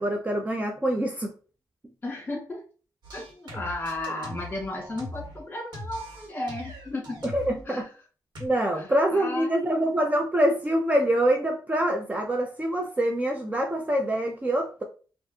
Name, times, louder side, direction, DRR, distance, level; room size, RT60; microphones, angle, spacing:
voice 1, 0.0-1.3 7.2-7.9 8.4-14.8, right 1 dB, 20° right, 3 dB, 0.5 m, -25 dB
voice 2, 2.0-2.6 3.1-7.2 7.7-7.8 8.8-9.7, left 2 dB, 25° left, 0 dB, 1.7 m, -34 dB
sound 1, 3.0-5.4 5.7-7.6 8.3-8.5, left 1 dB, 80° right, 1.4 m, -41 dB
4.7 x 2.5 x 2.7 m, 0.37 s
cardioid pair, 95°, 7 cm